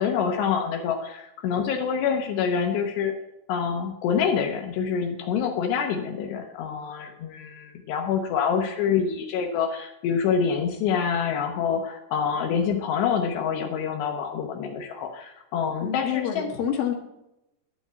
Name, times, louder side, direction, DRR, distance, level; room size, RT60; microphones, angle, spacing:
voice 1, 0.0-3.1 3.5-16.5, left 7 dB, 85° left, 3 dB, 3.2 m, -26 dB
voice 2, 15.8-16.9, left 9 dB, 65° left, 1 dB, 3.2 m, -27 dB
12.0 x 5.3 x 8.0 m, 0.88 s
omnidirectional pair, 4.8 m